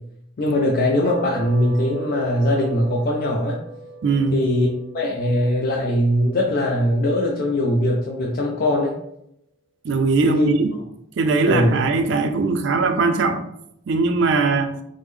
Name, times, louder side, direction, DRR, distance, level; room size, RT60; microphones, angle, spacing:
voice 1, 0.4-3.6 4.3-4.7 4.9-8.9 10.2-10.5 11.5-11.8, left 1 dB, 45° left, -1 dB, 0.4 m, -21 dB
sound 1, 1.0-7.6, right 3 dB, 25° right, 0.7 m, -38 dB
voice 2, 4.0-4.4 9.8-10.7 11.2-13.4 13.9-14.8, right 3 dB, 60° right, 7 dB, 0.3 m, -20 dB
3.4 x 2.0 x 3.2 m, 0.79 s
head